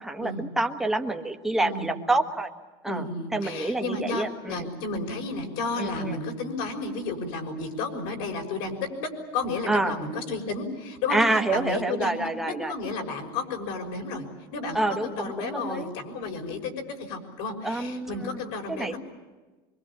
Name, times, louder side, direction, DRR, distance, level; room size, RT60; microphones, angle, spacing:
voice 1, 0.0-2.5 2.8-3.0 3.3-4.6 5.8-6.2 9.7-10.0 11.1-12.7 14.7-15.9 17.6-18.4 18.7-18.9, right 2 dB, 5° right, 4 dB, 1.4 m, -27 dB
voice 2, 1.6-1.9 2.9-12.2 12.4-19.0, left 3 dB, 60° left, 4 dB, 6.1 m, -32 dB
24.5 x 24.5 x 8.9 m, 1.2 s
cardioid pair, 170°, 13 cm